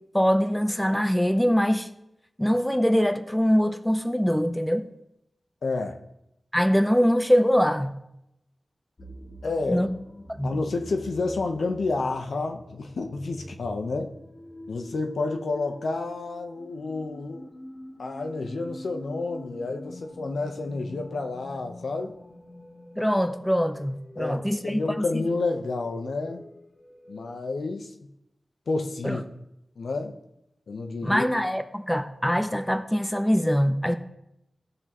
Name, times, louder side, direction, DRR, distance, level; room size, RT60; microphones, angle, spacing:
voice 1, 0.1-1.9 2.4-4.9 6.5-7.9 9.7-9.9 10.4-10.5 23.0-25.2 29.0-29.2 31.0-34.0, equal, 5° left, 0.6 m, -23 dB
voice 2, 5.6-6.0 9.4-9.9 10.4-14.1 14.7-17.5 18.0-22.2 24.1-26.5 27.1-27.9 28.7-29.3 29.8-30.2 30.7-31.3, left 3 dB, 85° left, 0.9 m, -30 dB
sound 1, 9.0-27.4, left 1 dB, 40° left, 1.6 m, -46 dB
17.5 x 6.1 x 3.0 m
wide cardioid pair, 105°, 0 cm